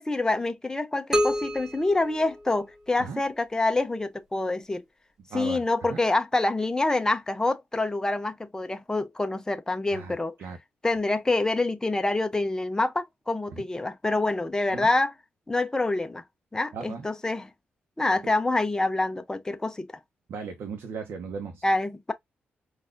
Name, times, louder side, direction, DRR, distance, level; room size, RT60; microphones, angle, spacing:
voice 1, 0.0-4.8 5.3-10.3 10.8-15.1 15.5-16.2 16.5-17.5 18.0-19.9 21.6-22.1, left 2 dB, 15° left, 0.6 m, -26 dB
sound 1, 1.1-3.0, equal, 15° right, 1.0 m, -29 dB
voice 2, 5.3-6.0 9.9-10.6 13.5-13.6 14.7-14.9 16.7-17.1 20.3-21.7, right 5 dB, 80° right, 0.8 m, -37 dB
4.0 x 2.4 x 2.5 m
cardioid pair, 70°, 4 cm